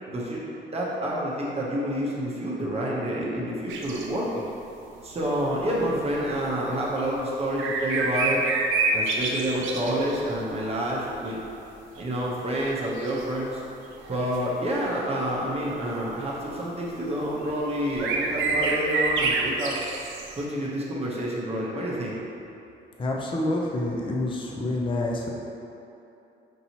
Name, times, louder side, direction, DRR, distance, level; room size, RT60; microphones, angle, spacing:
voice 1, 0.1-0.4 0.7-4.5 5.0-8.4 8.9-11.4 11.9-13.6 14.1-19.8 20.4-22.2, equal, 30° right, -5 dB, 0.7 m, -28 dB
sound 1, 3.7-4.1 6.1-6.2 7.0-7.1 7.6-10.3 11.0-11.5 12.0-12.1 13.0-13.4 14.0-14.4 16.2-16.4 17.5-17.6 17.8-20.4, right 3 dB, 80° right, 0.5 m, -27 dB
voice 2, 23.0-25.3, left 1 dB, 25° left, -1 dB, 0.5 m, -27 dB
5.3 x 2.8 x 2.7 m, 2.8 s
cardioid pair, 90°, 20 cm